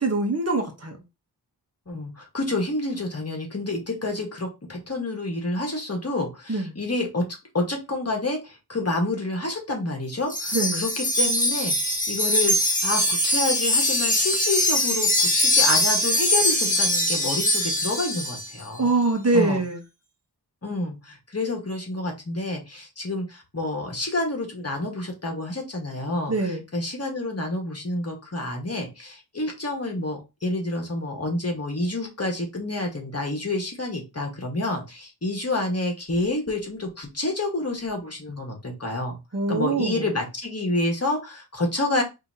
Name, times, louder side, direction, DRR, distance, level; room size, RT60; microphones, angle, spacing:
voice 1, 0.0-1.0 6.5-6.7 10.5-10.8 18.8-19.8 26.3-26.6 39.3-40.1, right 3 dB, 40° right, 3 dB, 1.0 m, -23 dB
voice 2, 1.9-7.3 7.5-18.9 19.3-19.6 20.6-39.2 39.5-42.0, left 2 dB, 40° left, 2 dB, 1.5 m, -29 dB
Wind chime, 10.3-18.5, left 1 dB, 20° left, 1.6 m, -22 dB
5.4 x 2.8 x 2.8 m, 0.25 s
wide cardioid pair, 85°, 40 cm